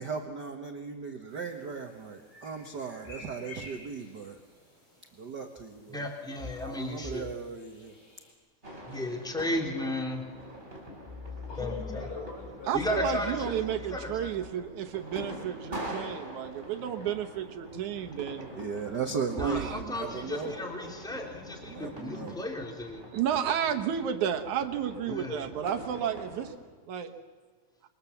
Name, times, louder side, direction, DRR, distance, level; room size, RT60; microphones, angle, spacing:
voice 1, 0.0-4.4 5.1-6.0 6.5-8.0 18.5-20.5 21.5-22.4, right 5 dB, 45° right, 4 dB, 1.4 m, -37 dB
sound 1, 1.3-8.3, left 2 dB, 30° left, 7.6 m, -53 dB
voice 2, 5.9-7.3 8.9-10.2 11.6-12.1 12.7-14.3 19.4-23.0 25.1-25.4, left 1 dB, ahead, 2 dB, 2.5 m, -34 dB
sound 2, 8.6-26.5, equal, 15° right, 4.8 m, -44 dB
voice 3, 11.0-13.0, left 2 dB, 55° left, 0 dB, 7.2 m, -43 dB
voice 4, 12.7-18.5 19.4-19.8 23.1-26.5 26.9-27.1, right 9 dB, 75° right, 7 dB, 2.6 m, -32 dB
27.0 x 23.5 x 7.2 m, 1.4 s
omnidirectional pair, 3.6 m